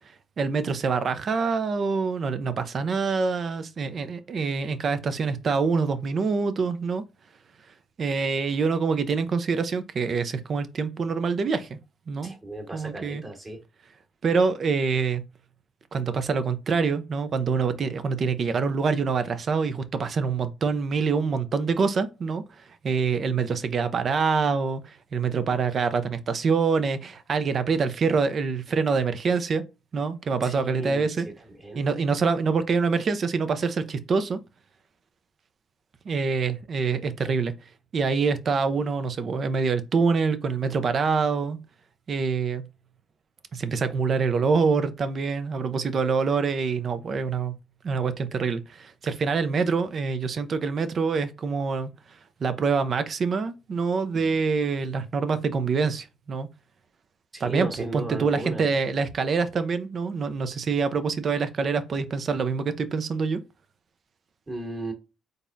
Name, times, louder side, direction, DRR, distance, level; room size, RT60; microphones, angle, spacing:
voice 1, 0.4-7.0 8.0-11.8 12.1-12.3 12.7-13.2 14.2-15.2 15.9-22.4 22.8-29.6 29.9-31.3 31.7-34.4 36.1-37.5 37.9-41.6 42.1-42.7 43.5-47.6 47.8-51.9 52.4-56.5 57.4-63.4, right 5 dB, 50° right, 0.6 m, -25 dB
voice 2, 12.2-13.6 30.4-31.3 31.6-31.8 57.3-58.7 64.5-64.9, right 2 dB, 30° right, 1.6 m, -35 dB
4.0 x 3.5 x 2.6 m
cardioid pair, 90°, 0 cm